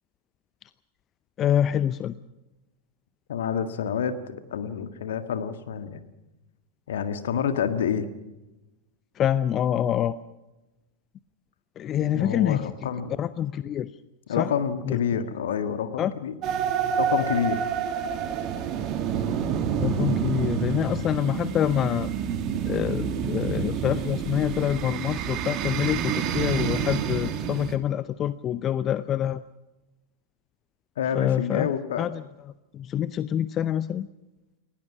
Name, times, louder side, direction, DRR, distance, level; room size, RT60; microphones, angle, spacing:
voice 1, 1.4-2.2 9.2-10.2 11.8-12.7 13.2-13.9 14.4-14.5 14.9-15.0 16.0-16.1 19.8-22.1 22.7-29.4 31.1-31.7 32.0-32.2 32.7-34.1, left 10 dB, 30° left, 16 dB, 0.6 m, -26 dB
voice 2, 3.3-6.0 6.9-8.1 12.0-13.2 14.3-16.4 17.0-17.7 31.0-32.1, left 8 dB, 60° left, 10 dB, 1.8 m, -28 dB
sound 1, 16.4-27.8, right 7 dB, 35° right, 2.1 m, -28 dB
29.5 x 17.5 x 6.1 m, 1.0 s
figure-of-eight pair, 90°, 0 cm